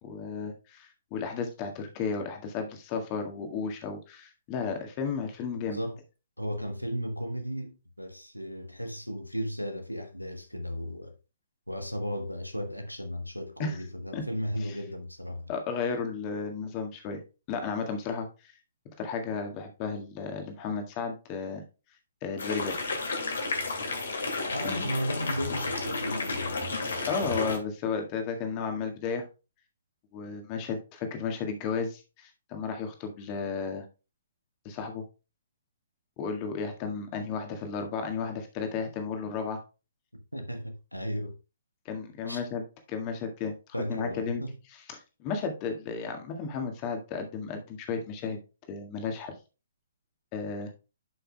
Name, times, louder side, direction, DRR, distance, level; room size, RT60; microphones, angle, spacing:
voice 1, 0.0-5.8 13.6-13.8 14.1-14.2 14.6-14.7 15.5-17.2 17.5-18.5 19.0-21.6 22.2-22.8 24.6-24.9 27.1-29.2 30.1-33.8 34.7-35.0 36.2-39.6 41.9-43.6 43.9-44.4 45.2-48.4 48.7-49.4 50.3-50.7, left 5 dB, 25° left, 1.8 m, -33 dB
voice 2, 5.6-6.0 6.4-11.1 11.7-15.5 24.5-26.6 40.1-41.4 42.3-42.4 43.7-44.6, equal, 90° left, 1.3 m, -35 dB
sound 1, 22.4-27.6, left 3 dB, 60° left, 2.2 m, -32 dB
11.0 x 5.7 x 2.3 m
figure-of-eight pair, 125°, 0 cm